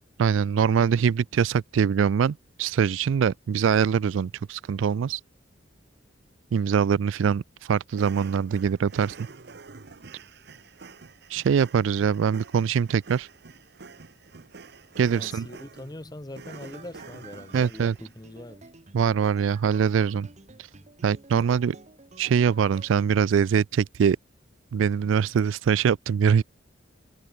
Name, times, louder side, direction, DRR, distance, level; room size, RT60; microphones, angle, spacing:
voice 1, 0.2-5.2 6.5-9.2 11.3-13.3 15.0-15.5 17.5-17.9 18.9-20.3 20.6-20.7 21.0-21.8 22.2-24.2 24.7-26.4, right 7 dB, 80° right, 0.3 m, -23 dB
sound 1, 7.9-18.1, right 4 dB, 55° right, 0.8 m, -47 dB
voice 2, 15.1-18.7, left 1 dB, 20° left, 0.9 m, -42 dB
sound 2, 16.5-23.0, right 3 dB, 35° right, 1.2 m, -51 dB
head